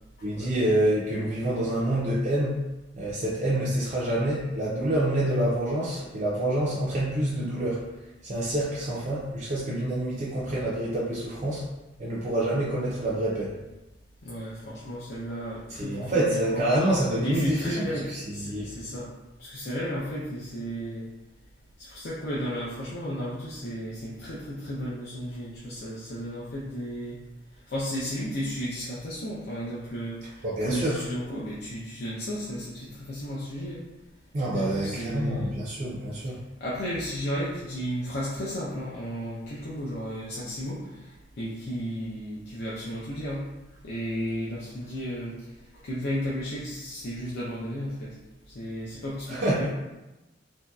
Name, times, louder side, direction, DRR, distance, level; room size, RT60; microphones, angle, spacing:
voice 1, 0.2-2.6 2.9-7.9 8.2-11.7 12.0-13.6 15.7-18.7 30.4-31.0 34.3-36.4 49.3-49.7, right 1 dB, 40° right, -6 dB, 0.4 m, -27 dB
voice 2, 14.2-16.7 17.2-19.1 19.4-21.0 21.8-27.2 27.7-33.8 34.5-35.6 36.6-41.1 41.4-43.4 43.8-45.4 45.8-48.1 48.5-49.7, equal, 55° left, -7 dB, 0.5 m, -33 dB
2.9 x 2.6 x 2.3 m, 1.0 s
head